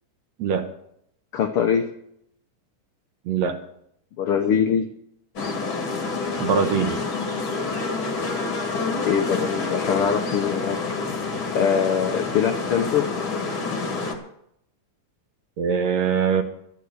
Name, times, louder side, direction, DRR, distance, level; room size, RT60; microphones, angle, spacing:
voice 1, 1.3-1.9 4.2-4.9 8.8-10.8 11.5-13.1, left 7 dB, 75° left, 5 dB, 1.3 m, -23 dB
voice 2, 3.3-3.6 6.4-7.0 15.6-16.4, right 6 dB, 65° right, 7 dB, 1.9 m, -22 dB
sound 1, 5.4-14.1, left 3 dB, 45° left, 2.2 m, -28 dB
13.0 x 11.0 x 6.4 m, 0.74 s
omnidirectional pair, 3.7 m